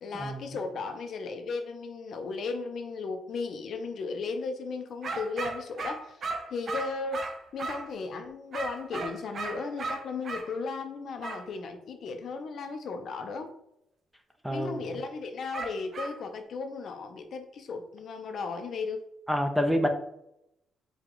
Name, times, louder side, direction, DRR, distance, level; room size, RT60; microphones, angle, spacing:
voice 1, 0.0-6.2 6.5-13.5 14.5-19.0, left 4 dB, 60° left, 7 dB, 0.5 m, -35 dB
sound 1, 5.0-7.9 8.5-10.5 11.2-11.4 15.5-16.2, right 3 dB, 50° right, 0.5 m, -36 dB
voice 2, 14.4-14.8 19.3-19.9, equal, ahead, 6 dB, 0.5 m, -27 dB
4.7 x 2.3 x 3.8 m, 0.81 s
cardioid pair, 90°, 0 cm